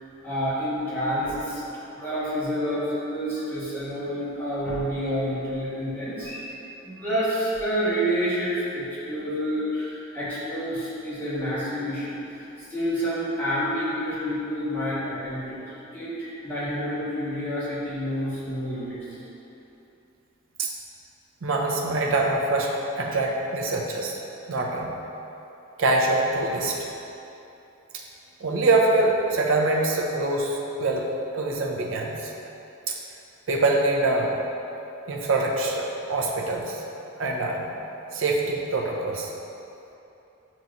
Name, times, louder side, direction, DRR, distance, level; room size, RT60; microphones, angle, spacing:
voice 1, 0.2-1.6 1.9-6.5 6.8-15.6 15.9-19.2, equal, 10° left, -12 dB, 1.4 m, -28 dB
voice 2, 21.4-24.2 24.5-24.9 25.8-26.8 28.4-31.1 31.3-32.3 32.9-33.0 33.5-34.4 35.1-36.8 37.2-37.7 38.1-39.3, right 2 dB, 70° right, -1 dB, 0.6 m, -24 dB
6.9 x 3.0 x 2.5 m, 2.9 s
head